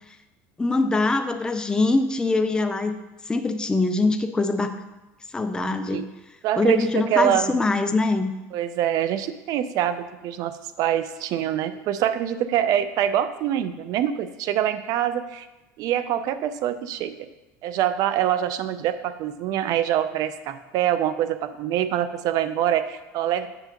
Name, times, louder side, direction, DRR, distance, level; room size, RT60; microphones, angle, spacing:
voice 1, 0.6-3.0 3.3-4.8 5.3-6.1 6.6-8.3, left 3 dB, 10° left, 7 dB, 0.5 m, -23 dB
voice 2, 6.4-7.5 8.5-15.5 15.8-17.1 17.6-23.5, right 10 dB, 60° right, 12 dB, 0.5 m, -25 dB
7.9 x 6.7 x 2.9 m, 1.0 s
supercardioid pair, 110°, 7 cm